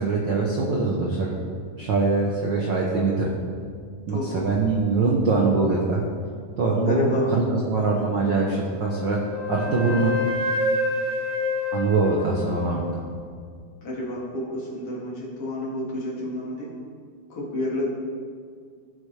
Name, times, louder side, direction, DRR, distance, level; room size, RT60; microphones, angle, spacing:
voice 1, 0.0-1.3 1.8-3.3 4.1-6.0 6.6-9.2 9.5-10.1 11.7-13.0, right 3 dB, 80° right, -2 dB, 1.0 m, -23 dB
voice 2, 4.1-4.5 6.8-7.3 13.8-16.7 17.3-17.9, left 1 dB, 50° left, -5 dB, 2.7 m, -29 dB
Wind instrument woodwind instrument, 8.8-13.0, left 2 dB, 70° left, 1.1 m, -28 dB
16.5 x 6.1 x 3.3 m, 2.1 s
omnidirectional pair, 3.6 m